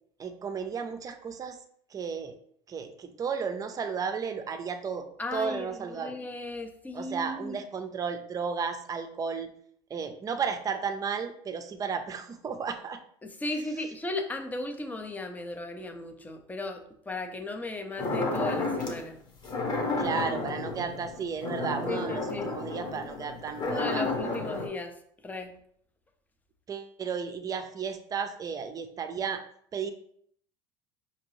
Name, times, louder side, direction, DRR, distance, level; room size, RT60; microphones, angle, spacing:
voice 1, 0.2-1.6 1.9-2.4 2.7-6.2 6.9-9.5 9.9-13.0 20.0-24.1 26.7-29.4 29.7-29.9, right 6 dB, 30° right, 8 dB, 0.6 m, -33 dB
voice 2, 5.2-7.6 13.2-19.2 21.9-22.5 23.6-24.9 25.2-25.6, left 2 dB, 15° left, 6 dB, 0.6 m, -36 dB
sound 1, 18.0-19.0 19.4-24.7, left 2 dB, 35° left, 1.1 m, -32 dB
5.1 x 2.8 x 3.1 m, 0.65 s
supercardioid pair, 105°, 12 cm